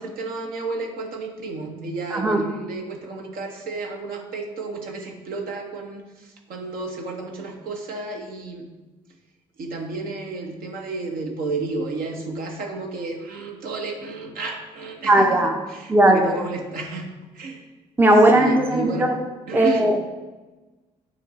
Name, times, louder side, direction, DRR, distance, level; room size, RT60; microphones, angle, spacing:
voice 1, 0.0-8.7 9.6-15.4 15.7-17.1 17.3-17.6 18.3-19.1 19.5-20.0, right 3 dB, 55° right, 2 dB, 1.1 m, -32 dB
voice 2, 2.1-2.4 15.1-15.5 15.9-16.4 18.0-19.2 19.5-20.0, right 1 dB, 10° right, 3 dB, 0.7 m, -17 dB
8.1 x 3.1 x 4.1 m, 1.2 s
figure-of-eight pair, 45°, 18 cm